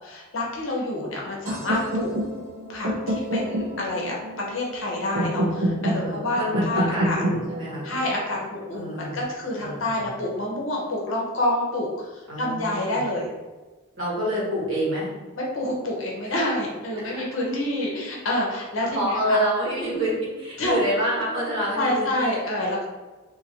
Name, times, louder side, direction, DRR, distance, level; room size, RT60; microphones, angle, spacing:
voice 1, 0.0-2.1 2.7-4.2 4.5-7.2 7.8-12.1 12.4-13.3 15.4-19.4 20.6-20.8 21.7-22.8, left 1 dB, 70° left, -2 dB, 0.8 m, -27 dB
sound 1, 1.5-9.4, equal, 85° right, 0.7 m, -28 dB
voice 2, 5.9-7.9 8.7-9.2 9.6-10.0 12.3-13.1 13.9-15.1 16.9-17.2 18.9-22.7, equal, 65° right, -7 dB, 1.4 m, -28 dB
2.8 x 2.6 x 2.8 m, 1.2 s
head